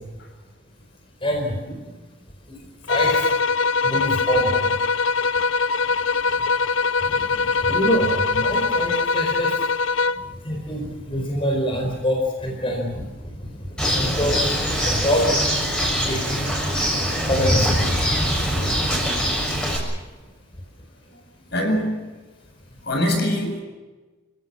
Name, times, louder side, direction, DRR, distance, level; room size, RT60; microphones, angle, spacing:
voice 1, 1.2-1.6 2.5-2.6 2.9-3.3 3.8-4.7 7.0-9.5 10.4-13.0 13.4-13.5 13.9-14.5 14.9-15.4 16.0-16.4 17.3-17.8, equal, 30° left, 1 dB, 4.5 m, -25 dB
sound 1, 2.9-10.3, left 4 dB, 80° left, 0.6 m, -22 dB
Bird, 13.8-19.8, equal, 5° left, 6.7 m, -23 dB
voice 2, 21.1-22.1 22.8-23.6, left 1 dB, 60° left, 3 dB, 8.0 m, -26 dB
29.0 x 17.5 x 7.5 m, 1.2 s
head